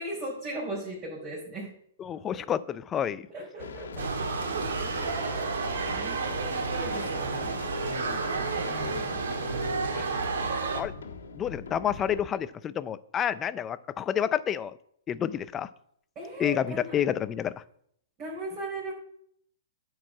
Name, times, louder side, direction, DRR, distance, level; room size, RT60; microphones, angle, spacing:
voice 1, 0.0-1.7 2.3-2.4 3.3-5.0 5.7-7.6 8.6-9.2 16.2-17.0 18.2-18.9, right 1 dB, 25° right, -6 dB, 3.9 m, -38 dB
voice 2, 2.0-3.3 7.9-8.2 9.5-9.6 9.9-10.2 10.7-10.9 11.3-14.7 15.1-15.7 16.4-17.6, left 9 dB, 20° left, 15 dB, 0.5 m, -29 dB
sound 1, 3.6-12.3, left 4 dB, 85° left, 1.6 m, -40 dB
sound 2, 4.0-10.8, right 4 dB, 80° right, 1.7 m, -31 dB
10.5 x 4.8 x 7.3 m, 0.68 s
hypercardioid pair, 145°, 0 cm